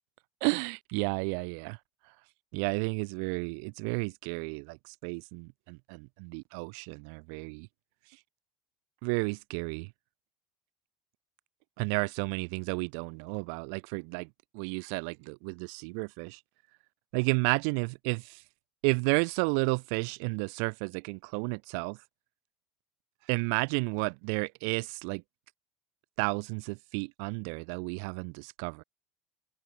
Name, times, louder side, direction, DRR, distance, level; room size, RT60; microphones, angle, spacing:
voice 1, 0.4-1.8 2.5-7.7 8.1-8.2 9.0-9.9 11.8-16.4 17.1-18.4 18.8-22.0 23.3-25.2 26.2-28.8, right 40 dB or more, 75° right, 1.7 m, -32 dB
supercardioid pair, 115°, 0 cm